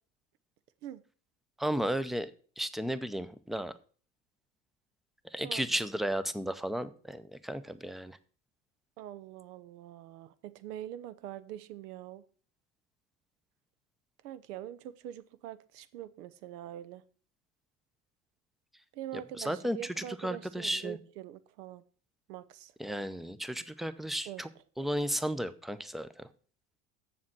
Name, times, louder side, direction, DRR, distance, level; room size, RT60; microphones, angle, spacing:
voice 1, 1.6-2.3 2.6-3.7 5.3-8.2 19.4-21.0 22.8-24.5 24.8-26.2, equal, ahead, 0.6 m, -34 dB
voice 2, 5.4-5.8 9.0-12.2 14.2-17.0 18.9-21.8 22.3-22.7 24.2-24.4, right 11 dB, 80° right, 0.9 m, -44 dB
7.4 x 7.3 x 6.1 m
hypercardioid pair, 75°, 47 cm